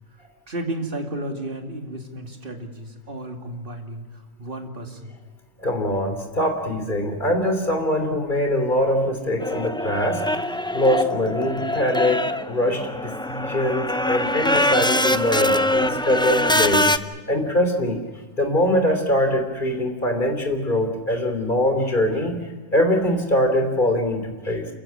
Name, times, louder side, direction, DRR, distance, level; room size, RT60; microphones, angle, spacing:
voice 1, 0.5-5.1 13.2-13.4, right 1 dB, 45° right, 3 dB, 2.6 m, -33 dB
voice 2, 5.6-10.2 10.7-16.9 17.3-18.0 18.4-22.5 22.7-24.7, left 1 dB, 40° left, 6 dB, 3.4 m, -23 dB
sound 1, 9.4-17.0, left 1 dB, 5° left, 0.3 m, -23 dB
28.5 x 15.0 x 8.7 m, 1.3 s
omnidirectional pair, 1.3 m